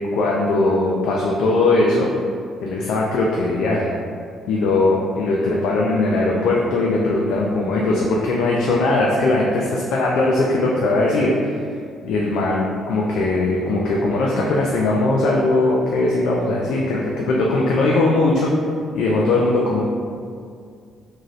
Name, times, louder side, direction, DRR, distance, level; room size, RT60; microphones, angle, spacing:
voice 1, 0.1-2.1 2.6-3.9 4.5-11.3 12.0-18.5 18.9-19.8, left 2 dB, 80° left, -3 dB, 0.3 m, -19 dB
3.0 x 2.6 x 2.5 m, 2.2 s
cardioid pair, 115°, 0 cm